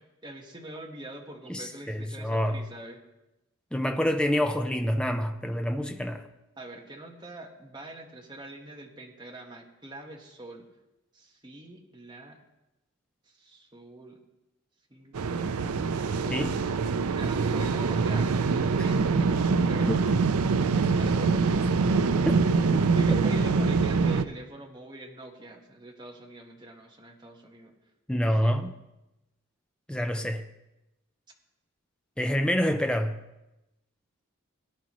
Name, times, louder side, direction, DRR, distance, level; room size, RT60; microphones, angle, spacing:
voice 1, 0.0-3.0 6.5-10.6 11.1-12.4 13.3-14.2 14.9-16.4 17.1-18.4 18.8-20.0 21.0-27.7 28.4-28.6 32.2-32.4, right 1 dB, 20° right, 1.4 m, -44 dB
voice 2, 1.5-2.7 3.7-6.3 16.3-16.6 19.9-20.0 22.3-22.4 22.7-22.8 23.1-23.2 28.1-28.7 29.9-30.4 32.2-33.2, equal, 5° left, 0.5 m, -27 dB
sound 1, 15.1-24.2, right 4 dB, 90° right, 0.5 m, -24 dB
18.0 x 10.5 x 3.1 m
head